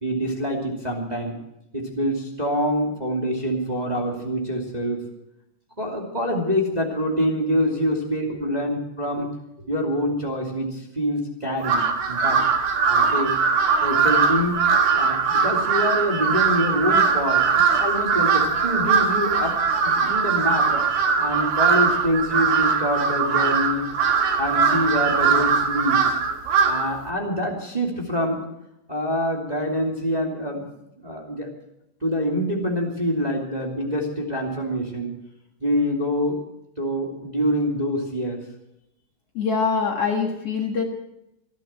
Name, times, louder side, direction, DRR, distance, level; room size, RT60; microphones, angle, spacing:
voice 1, 0.0-1.4 1.7-5.0 5.8-9.3 9.7-12.4 12.9-13.3 13.8-14.6 14.9-19.6 19.8-20.8 21.2-23.8 24.4-26.2 26.6-28.4 28.9-30.7 31.0-31.5 32.0-35.1 35.6-36.4 36.8-38.4, equal, 15° right, -1 dB, 2.4 m, -25 dB
Crow, 11.6-27.0, right 5 dB, 75° right, 3.4 m, -21 dB
voice 2, 39.3-40.8, left 5 dB, 50° left, 1 dB, 2.5 m, -24 dB
27.5 x 11.5 x 4.4 m, 0.82 s
omnidirectional pair, 3.8 m